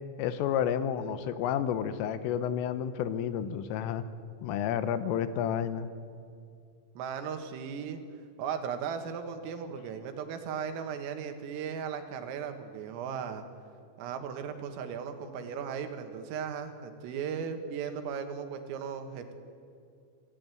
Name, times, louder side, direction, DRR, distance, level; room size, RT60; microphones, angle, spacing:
voice 1, 0.2-4.0 4.4-5.9, left 9 dB, 85° left, 12 dB, 3.6 m, -30 dB
voice 2, 7.0-8.0 8.4-13.4 14.0-19.3, right 7 dB, 85° right, 6 dB, 4.3 m, -37 dB
26.0 x 15.5 x 9.2 m, 2.4 s
omnidirectional pair, 5.8 m